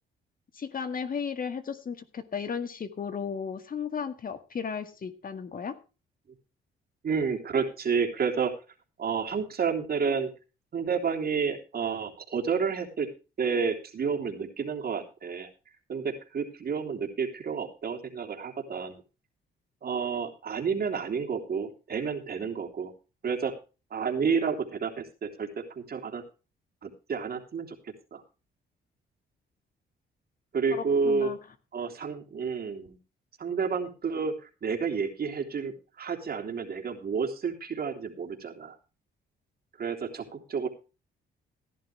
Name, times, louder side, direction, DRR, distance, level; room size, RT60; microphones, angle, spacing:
voice 1, 0.5-5.8 30.7-31.4, left 6 dB, 45° left, 10 dB, 1.9 m, -34 dB
voice 2, 7.0-8.5 9.0-10.3 10.7-13.1 13.4-15.5 15.9-19.0 19.8-22.9 23.2-23.5 23.9-26.2 26.8-27.8 28.1-28.2 30.5-31.3 31.7-33.0 33.4-38.7 39.8-40.7, right 5 dB, 50° right, 4 dB, 3.3 m, -30 dB
16.0 x 11.0 x 3.4 m, 0.32 s
cardioid pair, 90°, 20 cm